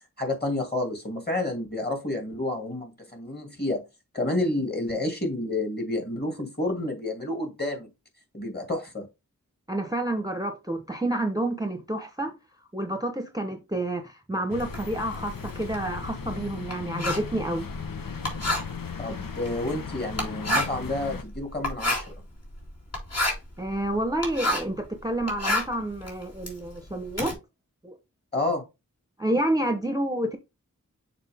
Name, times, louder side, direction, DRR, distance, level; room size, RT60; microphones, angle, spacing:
voice 1, 0.2-3.8 4.1-7.9 8.3-9.1 19.0-22.1 28.3-28.6, left 2 dB, 30° left, 2.3 m, -29 dB
voice 2, 9.7-12.3 12.7-17.6 23.6-27.4 27.8-28.0 29.2-30.4, right 1 dB, 10° right, 0.8 m, -29 dB
sound 1, 14.5-21.2, left 6 dB, 85° left, 0.8 m, -37 dB
Writing, 14.6-24.8 25.1-27.3, left 1 dB, 50° left, 2.6 m, -30 dB
6.6 x 4.3 x 3.4 m
wide cardioid pair, 50°, 33 cm